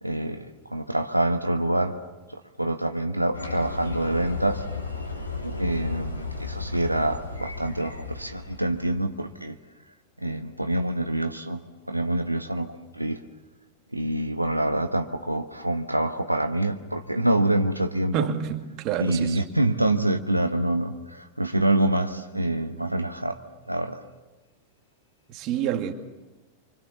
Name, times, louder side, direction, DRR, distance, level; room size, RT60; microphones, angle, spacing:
voice 1, 0.0-2.0 2.3-4.6 5.4-9.6 10.2-11.6 11.9-13.2 13.9-18.1 19.0-23.4 23.7-24.0, right 1 dB, 85° right, 1.4 m, -26 dB
sound 1, 3.3-9.2, left 3 dB, 85° left, 3.5 m, -34 dB
voice 2, 18.1-19.4 25.3-25.9, right 9 dB, 40° right, 2.3 m, -28 dB
26.5 x 25.0 x 7.2 m
figure-of-eight pair, 90°, 0 cm